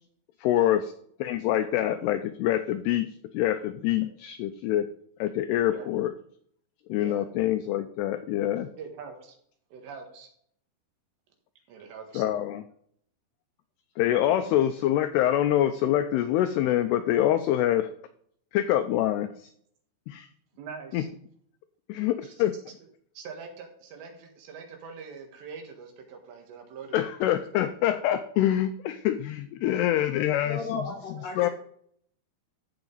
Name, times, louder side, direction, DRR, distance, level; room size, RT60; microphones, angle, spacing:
voice 1, 0.4-0.8 1.2-4.9 5.2-6.1 6.9-8.7 12.2-12.6 14.0-17.9 18.5-19.5 20.1-20.3 20.9-21.0 21.9-22.6 26.9-30.8 31.4-31.5, left 12 dB, 85° left, 10 dB, 2.3 m, -25 dB
voice 2, 6.9-7.3 8.8-9.4 9.7-10.3 11.7-12.2 14.2-14.5 20.5-21.1 22.2-22.5 23.2-27.7, right 5 dB, 70° right, 3 dB, 3.6 m, -43 dB
voice 3, 30.4-31.5, left 3 dB, 60° left, 0 dB, 2.8 m, -35 dB
14.5 x 5.0 x 3.9 m, 0.65 s
omnidirectional pair, 5.3 m